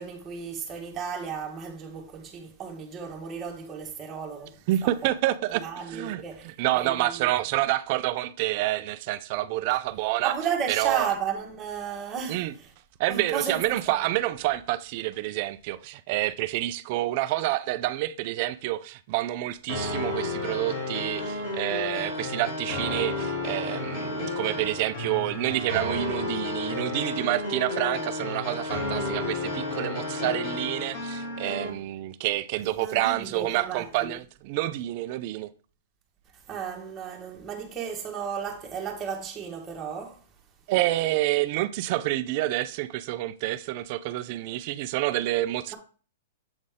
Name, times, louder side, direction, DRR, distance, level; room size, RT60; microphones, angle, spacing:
voice 1, 0.0-4.6 5.6-7.3 10.2-12.7 13.1-13.8 32.6-34.1 36.5-40.2, right 7 dB, 20° right, 1.5 m, -34 dB
voice 2, 4.7-10.3 10.7-11.1 12.3-12.5 13.0-35.5 40.7-45.7, right 16 dB, 45° right, 0.4 m, -28 dB
sound 1, 19.7-31.7, left 2 dB, 45° left, 2.7 m, -32 dB
7.8 x 4.1 x 3.6 m
hypercardioid pair, 150°, 0 cm